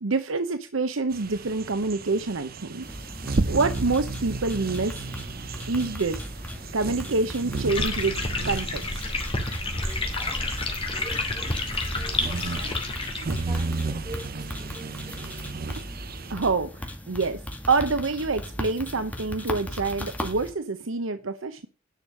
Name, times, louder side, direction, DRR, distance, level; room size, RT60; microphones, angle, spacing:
voice 1, 0.0-2.9 3.5-5.0 5.7-6.2 6.7-8.1 8.4-9.2 16.3-17.4 17.7-21.7, right 3 dB, 80° right, 0.8 m, -26 dB
sound 1, 1.1-16.3, right 3 dB, 50° right, 0.7 m, -34 dB
sound 2, 2.8-20.5, left 1 dB, 10° left, 2.1 m, -38 dB
sound 3, 7.7-13.6, left 3 dB, 30° left, 2.6 m, -29 dB
voice 2, 9.7-15.4, right 1 dB, 20° right, 4.2 m, -45 dB
10.5 x 6.4 x 6.4 m
head